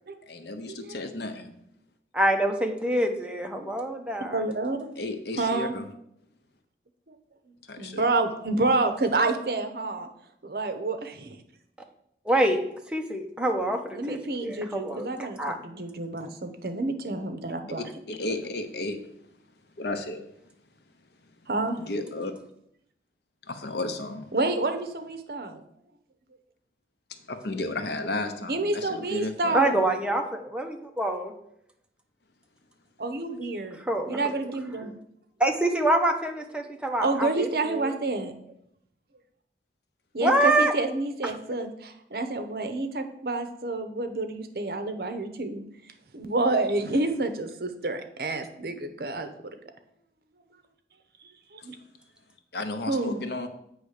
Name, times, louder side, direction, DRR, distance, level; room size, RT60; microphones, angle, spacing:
voice 1, 0.3-1.6 5.0-5.9 7.7-8.0 16.2-16.3 17.8-19.1 19.8-20.3 21.8-22.3 23.5-24.3 27.1-29.6 52.5-53.5, left 2 dB, 70° left, 8 dB, 0.8 m, -33 dB
voice 2, 2.1-4.4 12.3-12.6 12.9-15.1 15.4-15.6 29.5-31.3 33.9-34.3 35.4-37.9 40.2-40.7, right 1 dB, 5° right, 3 dB, 0.7 m, -26 dB
voice 3, 4.3-4.9 5.4-5.7 7.1-7.2 7.8-10.1 10.4-11.4 13.9-17.8 21.5-21.8 24.3-25.6 28.5-29.8 33.0-34.9 37.0-38.3 40.1-45.6 46.1-49.6 51.2-51.7 52.9-53.2, right 2 dB, 60° right, 8 dB, 0.8 m, -29 dB
8.1 x 3.2 x 6.4 m, 0.75 s
head